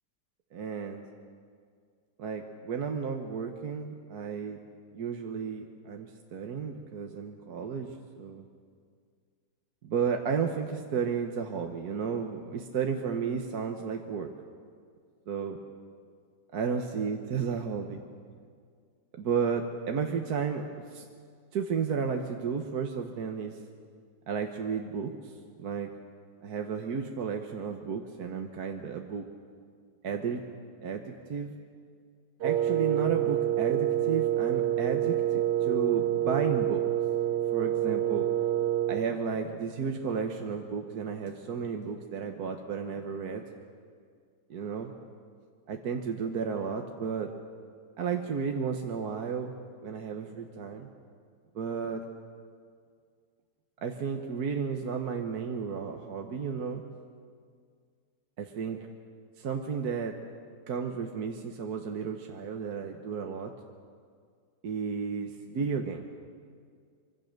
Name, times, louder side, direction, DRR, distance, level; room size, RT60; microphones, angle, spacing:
voice 1, 0.5-1.0 2.2-4.6 4.9-8.4 9.8-14.3 15.3-15.6 16.5-18.0 19.2-21.0 21.5-23.5 24.3-25.3 25.6-25.9 26.4-29.2 30.0-30.4 30.8-31.5 32.4-36.8 37.5-38.3 38.9-43.4 44.5-44.9 45.7-47.3 48.0-49.5 49.8-50.9 51.5-52.0 53.8-56.8 58.4-58.8 59.4-60.1 60.7-63.5 64.6-66.0, right 6 dB, 65° right, 3 dB, 1.6 m, -33 dB
Wind instrument woodwind instrument, 32.4-39.1, right 12 dB, 80° right, 1.5 m, -27 dB
24.5 x 24.0 x 6.6 m, 2.1 s
omnidirectional pair, 1.8 m